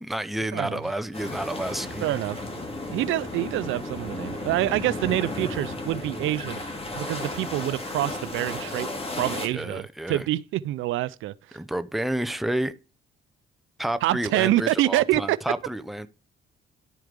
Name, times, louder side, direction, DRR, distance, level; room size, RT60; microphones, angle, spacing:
voice 1, 0.0-2.1 9.5-10.3 11.5-12.7 13.8-16.1, right 1 dB, ahead, 0.6 m, -30 dB
sound 1, 1.1-9.5, left 2 dB, 25° left, 2.5 m, -34 dB
voice 2, 2.0-2.4 2.9-6.6 7.0-8.9 9.2-11.6 14.0-15.4, right 15 dB, 70° right, 0.5 m, -26 dB
11.0 x 4.6 x 5.1 m
supercardioid pair, 80°, 21 cm